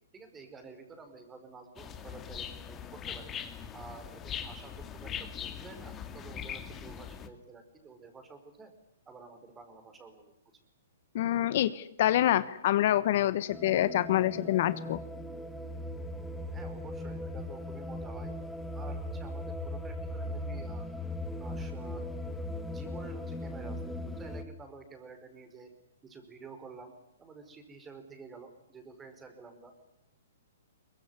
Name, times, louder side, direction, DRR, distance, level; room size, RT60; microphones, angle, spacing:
voice 1, 0.1-3.3 3.7-8.7 9.1-10.3 16.5-18.3 18.7-20.9 21.4-22.0 22.7-25.7 26.0-26.9 27.2-29.7, right 4 dB, 15° right, 8 dB, 5.0 m, -50 dB
sound 1, 1.8-7.3, left 8 dB, 20° left, 2.3 m, -41 dB
voice 2, 11.1-15.0, left 12 dB, 55° left, 16 dB, 1.1 m, -26 dB
sound 2, 13.5-24.4, left 1 dB, 5° left, 2.1 m, -38 dB
23.0 x 21.0 x 9.8 m, 0.80 s
hypercardioid pair, 135°, 0 cm